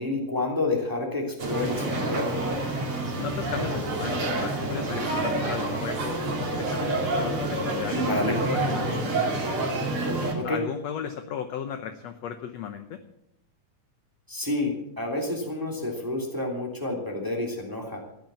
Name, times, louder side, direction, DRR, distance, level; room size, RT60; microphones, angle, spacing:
voice 1, 0.0-2.3 8.0-8.3 10.3-10.6 14.3-18.0, left 2 dB, 5° right, 0 dB, 2.4 m, -29 dB
sound 1, 1.4-10.3, right 2 dB, 40° right, 3.2 m, -28 dB
voice 2, 3.1-6.2 6.5-9.5 10.4-13.0, left 8 dB, 70° left, 7 dB, 1.7 m, -36 dB
14.5 x 10.5 x 7.0 m, 0.79 s
omnidirectional pair, 3.9 m